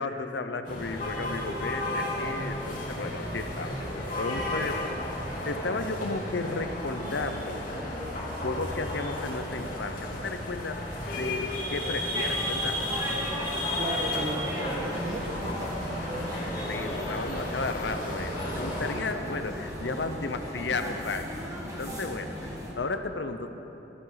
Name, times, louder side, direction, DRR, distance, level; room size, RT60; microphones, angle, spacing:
voice 1, 0.0-7.6 8.4-12.8 16.7-23.6, left 3 dB, 80° left, 8 dB, 0.8 m, -34 dB
sound 1, 0.6-18.9, left 1 dB, 45° left, 3.4 m, -33 dB
sound 2, 12.1-22.7, equal, 20° right, 1.9 m, -37 dB
voice 2, 13.8-16.3, right 1 dB, 40° right, 1 dB, 1.5 m, -35 dB
17.5 x 14.0 x 4.0 m, 3.0 s
head